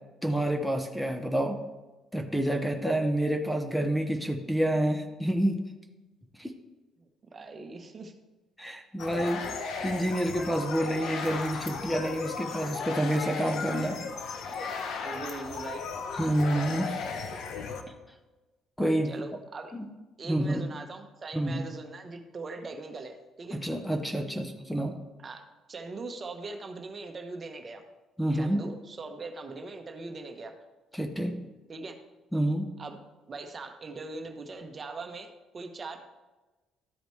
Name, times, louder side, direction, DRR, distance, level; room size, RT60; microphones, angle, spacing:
voice 1, 0.2-1.6 2.1-5.6 6.4-6.5 8.6-14.0 16.2-17.0 18.8-19.1 19.7-19.9 20.3-20.7 21.3-21.6 23.5-25.0 28.2-28.6 30.9-31.4 32.3-32.7, right 1 dB, 5° left, 5 dB, 0.9 m, -28 dB
voice 2, 7.0-8.1 9.1-9.6 15.0-15.8 19.0-19.7 20.2-23.6 25.2-27.8 28.3-30.6 31.7-32.0 32.8-33.0 33.3-36.0, right 3 dB, 35° right, 5 dB, 1.0 m, -41 dB
sound 1, 9.0-17.8, left 5 dB, 70° left, 0.9 m, -36 dB
13.0 x 5.1 x 3.2 m, 1.2 s
cardioid pair, 90°, 0 cm